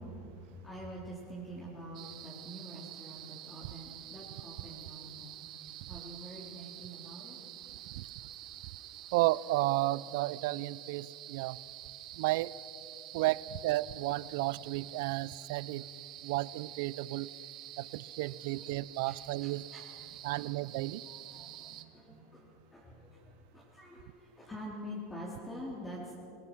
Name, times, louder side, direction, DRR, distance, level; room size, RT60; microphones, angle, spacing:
voice 1, 0.0-7.4 14.3-14.7 18.6-18.7 19.0-20.5 21.0-26.1, equal, 15° left, -5 dB, 3.9 m, -47 dB
sound 1, 1.9-21.8, right 13 dB, 45° right, 1.3 m, -48 dB
voice 2, 9.1-11.6 12.2-12.5 13.1-15.8 16.2-17.3 17.8-19.6 20.2-21.0, right 18 dB, 70° right, 20 dB, 0.5 m, -32 dB
25.5 x 17.5 x 6.3 m, 2.7 s
supercardioid pair, 125°, 0 cm